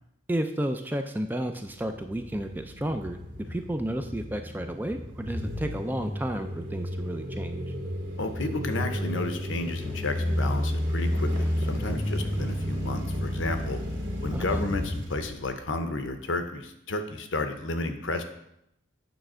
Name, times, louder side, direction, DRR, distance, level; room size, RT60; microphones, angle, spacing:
voice 1, 0.3-3.2 3.5-7.6 14.3-14.6, right 1 dB, 10° right, 6 dB, 0.3 m, -32 dB
sound 1, 1.7-16.0, equal, 60° right, 1.9 m, -32 dB
voice 2, 8.2-13.8 14.2-18.2, left 2 dB, 70° left, 7 dB, 0.8 m, -32 dB
9.0 x 3.4 x 6.2 m, 0.79 s
head